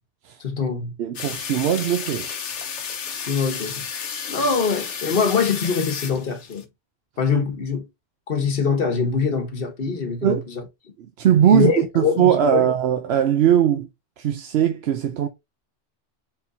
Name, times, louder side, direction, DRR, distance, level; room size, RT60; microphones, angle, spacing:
voice 1, 0.4-1.0 3.1-3.8 4.3-6.6 7.2-7.8 8.3-10.6 11.5-12.7, left 5 dB, 50° left, 1.2 m, -23 dB
voice 2, 1.0-2.3 10.2-10.4 11.2-13.9 14.2-15.3, right 9 dB, 65° right, 0.8 m, -19 dB
sound 1, 1.2-6.6, left 7 dB, 75° left, 1.1 m, -32 dB
4.4 x 3.8 x 2.7 m
omnidirectional pair, 1.2 m